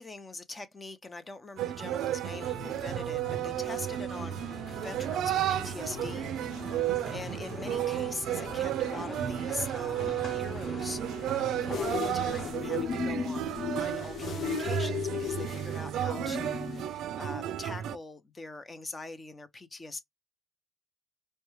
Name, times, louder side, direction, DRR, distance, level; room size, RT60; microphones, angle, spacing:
voice 1, 0.0-6.3 7.1-11.0 11.6-20.0, left 3 dB, 25° left, 0.7 m, -43 dB
sound 1, 1.6-18.0, right 11 dB, 80° right, 0.3 m, -33 dB
sound 2, 2.3-12.5, left 3 dB, 45° left, 1.2 m, -43 dB
sound 3, 11.7-16.9, left 8 dB, 65° left, 0.4 m, -35 dB
4.5 x 2.2 x 3.0 m
cardioid pair, 90°, 0 cm